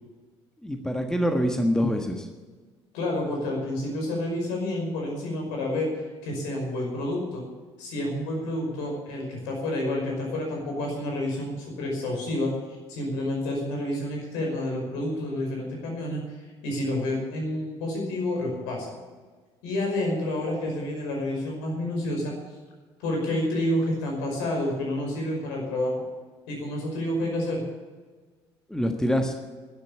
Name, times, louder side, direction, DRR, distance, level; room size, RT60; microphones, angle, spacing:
voice 1, 0.6-2.3 28.7-29.3, equal, 5° left, 5 dB, 1.6 m, -25 dB
voice 2, 2.9-7.4 7.8-12.5 12.9-16.2 16.6-18.9 19.6-22.3 23.0-26.0 26.5-27.6, left 1 dB, 65° left, 0 dB, 5.5 m, -29 dB
12.0 x 11.5 x 8.7 m, 1.4 s
figure-of-eight pair, 55°, 14 cm